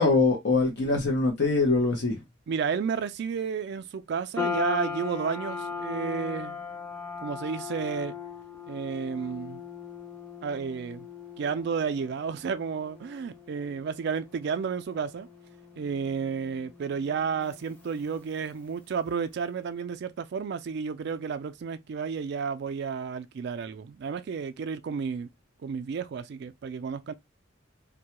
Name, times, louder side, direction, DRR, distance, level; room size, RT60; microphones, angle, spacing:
voice 1, 0.0-2.2, left 3 dB, 60° left, 0.6 m, -23 dB
voice 2, 2.5-6.6 7.2-8.1 8.7-9.6 10.4-11.1 11.4-15.3 15.8-25.3 25.6-27.1, right 6 dB, 55° right, 0.3 m, -32 dB
sound 1, 4.4-18.8, left 6 dB, 10° left, 0.5 m, -39 dB
2.2 x 2.1 x 2.9 m
head